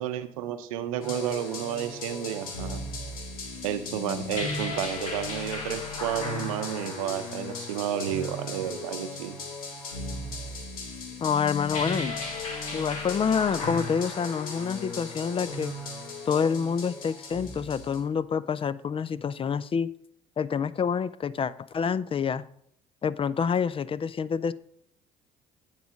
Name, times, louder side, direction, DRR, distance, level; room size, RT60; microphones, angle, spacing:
voice 1, 0.0-2.8 3.6-9.4, right 10 dB, 85° right, 11 dB, 0.7 m, -31 dB
sound 1, 1.0-18.0, left 3 dB, 90° left, 1.3 m, -36 dB
voice 2, 11.2-12.1 12.7-15.7 16.3-19.9 20.4-22.4 23.0-24.5, left 6 dB, 30° left, 18 dB, 0.4 m, -27 dB
9.3 x 4.1 x 6.2 m, 0.68 s
hypercardioid pair, 60°, 17 cm